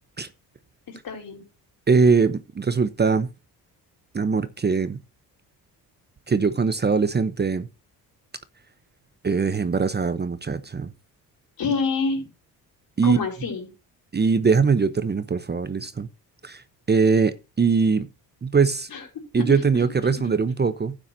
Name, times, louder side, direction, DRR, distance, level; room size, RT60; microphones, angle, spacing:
voice 1, 0.9-1.4 11.6-12.3 13.0-13.7 18.9-19.6, left 4 dB, 60° left, 4.7 m, -27 dB
voice 2, 1.9-3.3 4.1-5.0 6.3-7.7 9.2-10.9 13.0-13.2 14.1-16.1 16.4-16.6 16.9-18.1 18.4-18.9 19.3-21.0, right 5 dB, 25° right, 0.9 m, -21 dB
12.5 x 9.0 x 2.8 m
supercardioid pair, 75°, 40 cm